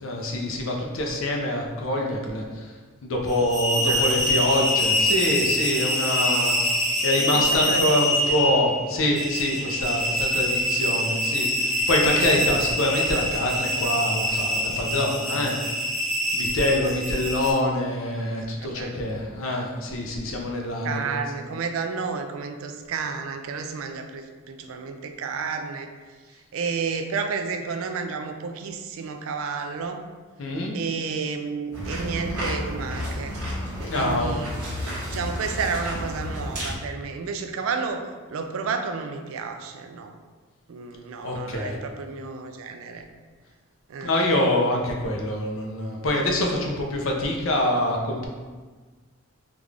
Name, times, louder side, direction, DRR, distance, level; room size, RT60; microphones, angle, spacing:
voice 1, 0.0-2.7 3.0-6.6 7.0-15.6 16.3-21.2 30.4-30.7 33.9-34.3 41.2-41.8 44.0-48.3, left 1 dB, 65° left, 0 dB, 0.6 m, -25 dB
sound 1, 3.3-17.5, equal, ahead, 0.5 m, -25 dB
voice 2, 3.8-4.2 7.2-8.4 16.8-16.9 18.6-19.0 20.8-25.9 26.5-30.0 30.7-33.4 33.9-34.6 35.1-40.2 40.7-43.1 43.9-44.1, right 5 dB, 65° right, 6 dB, 0.3 m, -31 dB
sound 2, 31.7-36.8, equal, 85° right, 1.2 m, -31 dB
3.6 x 2.4 x 3.3 m, 1.4 s
head